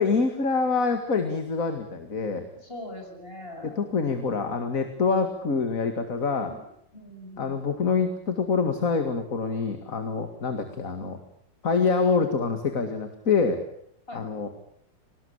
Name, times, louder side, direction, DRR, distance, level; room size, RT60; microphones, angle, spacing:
voice 1, 0.0-2.5 3.6-6.5 7.4-11.2 11.6-13.6 14.1-14.5, left 4 dB, 45° left, 7 dB, 2.5 m, -26 dB
voice 2, 2.6-3.9 6.4-6.6 6.9-7.7 14.1-14.3, left 1 dB, 30° left, 3 dB, 7.7 m, -42 dB
26.5 x 19.5 x 8.8 m, 0.71 s
omnidirectional pair, 2.0 m